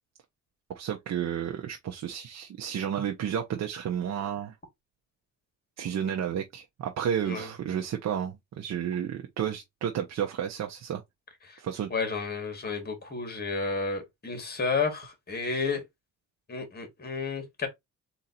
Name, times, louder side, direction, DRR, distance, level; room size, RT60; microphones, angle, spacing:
voice 1, 0.7-4.5 5.8-11.0 11.6-11.9, right 9 dB, 60° right, 0.9 m, -32 dB
voice 2, 11.9-15.8 16.5-17.7, left 4 dB, 30° left, 2.1 m, -31 dB
3.8 x 2.8 x 4.2 m
cardioid pair, 90°, 30 cm